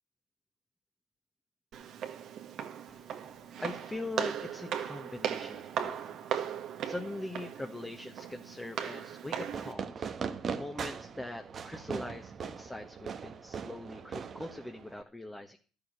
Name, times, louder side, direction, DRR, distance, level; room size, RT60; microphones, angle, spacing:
Walk footsteps, 1.7-9.7, right 9 dB, 60° right, 1.5 m, -38 dB
voice 1, 2.9-15.6, left 1 dB, 10° left, 3 dB, 1.5 m, -42 dB
Fireworks, 9.5-15.0, right 6 dB, 45° right, 1.1 m, -40 dB
12.5 x 7.0 x 8.1 m, 0.38 s
hypercardioid pair, 65°, 0 cm